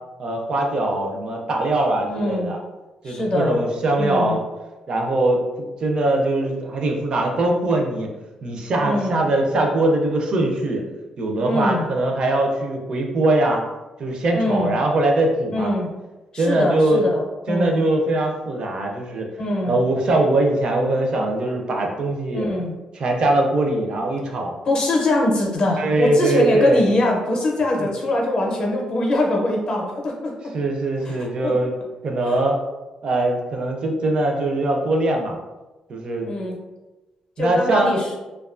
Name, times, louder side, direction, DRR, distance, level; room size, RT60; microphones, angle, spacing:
voice 1, 0.2-2.6 3.0-4.4 4.9-8.1 8.4-10.8 11.2-13.6 14.0-15.7 16.4-17.0 17.5-19.3 19.7-22.5 22.9-24.5 25.8-26.8 27.8-27.9 30.5-31.7 32.0-32.6 33.0-35.4 35.9-36.3 37.4-38.0, right 2 dB, 45° right, 2 dB, 0.5 m, -21 dB
voice 2, 2.0-2.5 3.0-3.6 4.0-4.4 8.8-9.2 11.4-11.8 14.3-14.8 15.5-15.9 16.3-17.8 19.4-19.8 22.3-22.7 24.7-30.5 31.0-31.5 36.3-36.6 37.4-38.1, left 1 dB, 45° left, 0 dB, 0.6 m, -22 dB
2.5 x 2.3 x 2.4 m, 1.1 s
cardioid pair, 145°, 2 cm